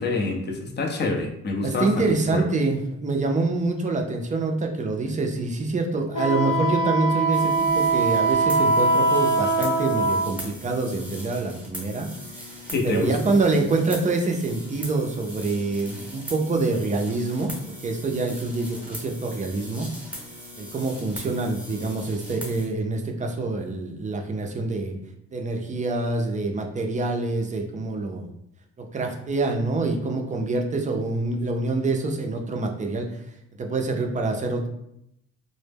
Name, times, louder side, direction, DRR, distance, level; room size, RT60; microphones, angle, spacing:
voice 1, 0.0-2.1 2.3-2.5 12.7-13.1, left 3 dB, 35° left, 2 dB, 0.5 m, -26 dB
voice 2, 1.6-12.1 12.4-12.5 12.8-19.9 20.6-24.9 25.3-28.3 28.8-33.1 33.6-34.7, right 3 dB, 25° right, 3 dB, 0.4 m, -26 dB
Wind instrument woodwind instrument, 6.1-10.3, right 2 dB, 90° left, 0.8 m, -22 dB
sound 1, 7.3-22.7, equal, 5° right, 0.8 m, -40 dB
2.0 x 2.0 x 3.3 m, 0.77 s
cardioid pair, 90°, 30 cm